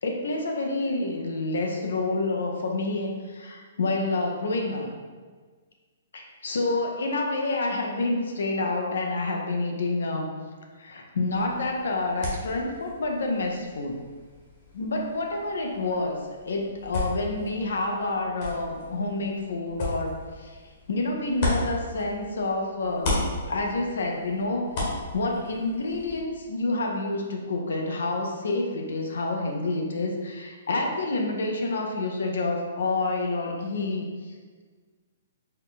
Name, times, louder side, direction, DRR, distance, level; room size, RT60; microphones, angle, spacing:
voice 1, 0.0-4.9 6.1-10.3 10.8-14.0 14.7-20.6 20.9-24.7 25.1-34.1, left 2 dB, 75° left, 1 dB, 0.6 m, -28 dB
sound 1, 11.3-22.5 22.8-26.2, left 2 dB, 45° left, 1.2 m, -35 dB
4.2 x 2.1 x 3.9 m, 1.5 s
hypercardioid pair, 140°, 0 cm